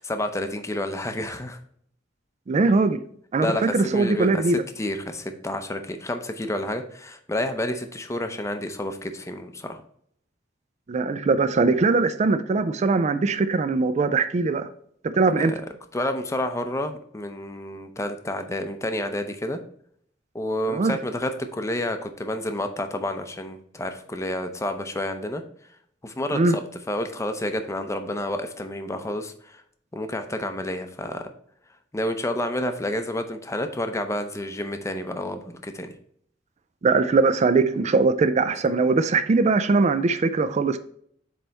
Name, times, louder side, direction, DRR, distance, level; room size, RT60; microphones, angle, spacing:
voice 1, 0.0-1.6 3.4-4.4 4.8-9.8 15.4-15.6 15.9-19.6 20.3-25.4 26.0-29.6 29.9-31.2 31.9-35.9, left 1 dB, 15° left, 7 dB, 0.6 m, -29 dB
voice 2, 2.5-3.0 3.3-4.6 10.9-14.7 15.0-15.5 20.7-21.0 26.3-26.5 36.8-40.8, right 3 dB, 35° right, 11 dB, 0.4 m, -21 dB
7.6 x 3.4 x 4.0 m, 0.65 s
head